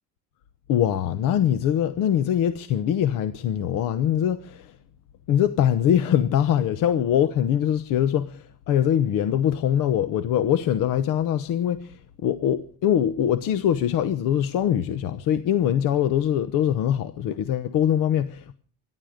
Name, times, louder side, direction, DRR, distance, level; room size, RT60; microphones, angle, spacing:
voice 1, 0.7-4.8 5.3-18.5, left 10 dB, 65° left, 1.0 m, -23 dB
25.5 x 11.0 x 5.1 m
cardioid pair, 165°, 35 cm